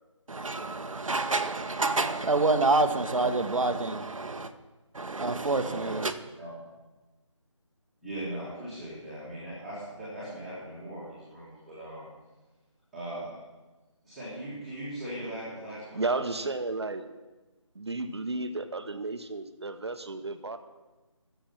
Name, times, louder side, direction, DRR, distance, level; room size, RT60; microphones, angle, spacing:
voice 1, 0.3-4.5 4.9-6.1, right 3 dB, 90° right, 1.1 m, -27 dB
voice 2, 5.6-6.0 6.4-6.5 8.0-12.1 12.9-13.4 14.0-16.0 16.3-16.4, right 1 dB, ahead, 1.7 m, -39 dB
voice 3, 15.9-17.1 17.7-20.6, right 3 dB, 55° right, 1.0 m, -33 dB
15.0 x 7.0 x 5.8 m
figure-of-eight pair, 175°, 17 cm